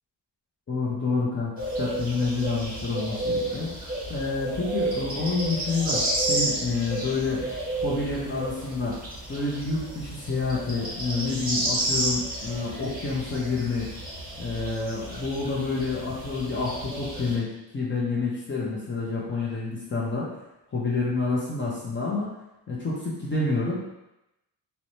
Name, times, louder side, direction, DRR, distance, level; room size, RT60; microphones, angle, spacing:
voice 1, 0.7-1.5 1.8-3.7 4.1-7.4 7.8-9.0 9.3-13.9 14.4-20.3 20.7-22.3 22.7-23.7, left 3 dB, 30° left, -6 dB, 0.5 m, -28 dB
sound 1, 1.6-17.4, right 1 dB, 20° right, 0.6 m, -31 dB
3.0 x 2.0 x 2.6 m, 0.92 s
wide cardioid pair, 175°, 41 cm